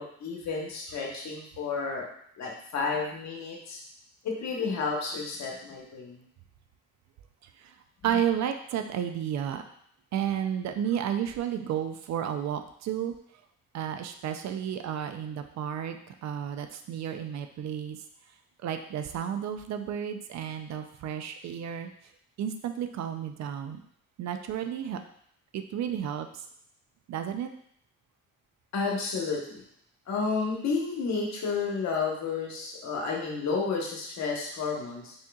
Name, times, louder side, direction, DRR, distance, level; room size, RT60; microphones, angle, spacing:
voice 1, 0.0-2.0 2.4-3.8 4.2-6.2 28.7-29.6 30.1-35.1, left 4 dB, 65° left, -1 dB, 1.1 m, -31 dB
voice 2, 8.0-9.6 10.1-13.1 13.7-18.0 18.6-21.9 22.4-23.8 24.2-25.0 25.5-26.4 27.1-27.5, right 9 dB, 65° right, 7 dB, 0.5 m, -32 dB
4.2 x 3.6 x 2.3 m, 0.66 s
cardioid pair, 90°, 30 cm